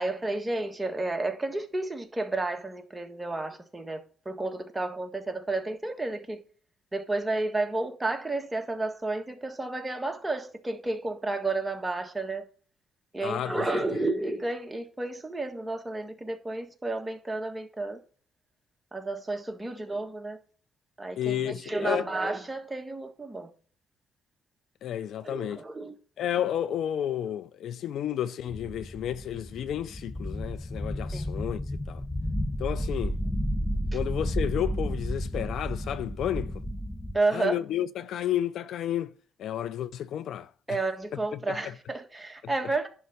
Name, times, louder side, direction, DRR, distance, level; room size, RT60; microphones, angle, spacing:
voice 1, 0.0-6.4 6.9-12.4 13.1-18.0 18.9-20.4 21.0-23.5 25.2-25.9 31.1-31.3 37.1-37.6 40.7-42.9, right 2 dB, 15° right, 1.5 m, -31 dB
voice 2, 13.2-14.0 21.2-22.1 24.8-25.6 26.2-32.0 32.6-33.2 33.9-36.6 37.3-39.1 39.4-40.8 41.3-41.7 42.4-42.5, left 11 dB, 75° left, 0.4 m, -32 dB
sound 1, 28.5-37.2, equal, 5° left, 0.7 m, -32 dB
11.0 x 3.7 x 6.7 m
cardioid pair, 90°, 0 cm